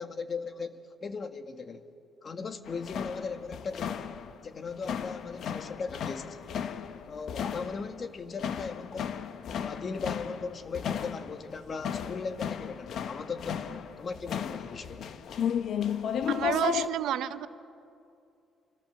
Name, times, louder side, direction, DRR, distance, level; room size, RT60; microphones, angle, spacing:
voice 1, 0.0-1.9 2.2-4.1 4.4-6.4 7.1-9.3 9.6-15.0, left 4 dB, 45° left, 1.8 m, -38 dB
sound 1, 2.6-16.9, left 8 dB, 70° left, 1.3 m, -34 dB
voice 2, 16.3-17.5, right 11 dB, 80° right, 0.9 m, -30 dB
29.0 x 25.0 x 7.3 m
cardioid pair, 90°, 0 cm